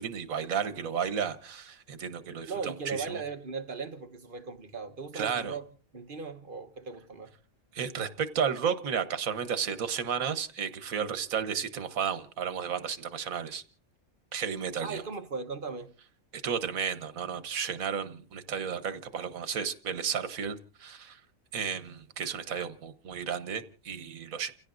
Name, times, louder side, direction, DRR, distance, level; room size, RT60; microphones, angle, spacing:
voice 1, 0.0-3.2 5.1-5.5 7.7-13.6 14.3-15.0 16.3-21.2 21.5-24.5, right 7 dB, 80° right, 1.5 m, -33 dB
voice 2, 2.5-5.6 5.9-7.3 14.8-15.9, right 5 dB, 40° right, 1.1 m, -38 dB
30.0 x 16.5 x 2.6 m
omnidirectional pair, 1.4 m